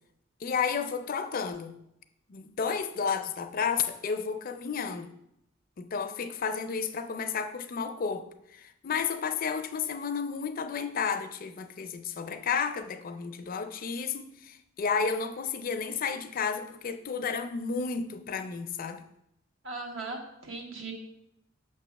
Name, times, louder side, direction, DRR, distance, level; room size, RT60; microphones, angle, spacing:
voice 1, 0.4-1.7 2.3-5.1 5.8-8.3 8.5-19.0, left 6 dB, 45° left, 8 dB, 0.4 m, -32 dB
voice 2, 19.6-20.9, right 3 dB, 75° right, 2 dB, 1.2 m, -38 dB
6.5 x 3.0 x 5.7 m, 0.80 s
head